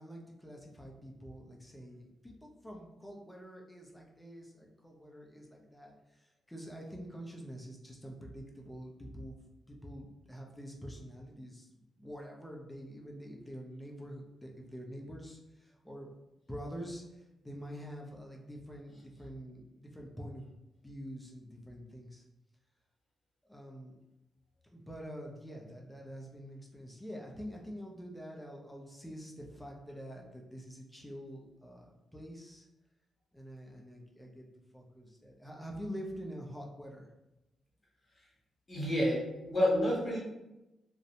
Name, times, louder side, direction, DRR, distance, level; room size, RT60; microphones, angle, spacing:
voice 1, 0.0-9.4 9.7-11.7 12.0-16.1 16.5-20.4 20.8-22.2 23.5-24.0 24.6-32.7 33.3-34.5 34.7-37.1, equal, 5° left, -1 dB, 0.5 m, -46 dB
voice 2, 38.7-40.2, equal, 25° left, -5 dB, 0.9 m, -29 dB
2.5 x 2.1 x 2.8 m, 0.96 s
cardioid pair, 120°, 0 cm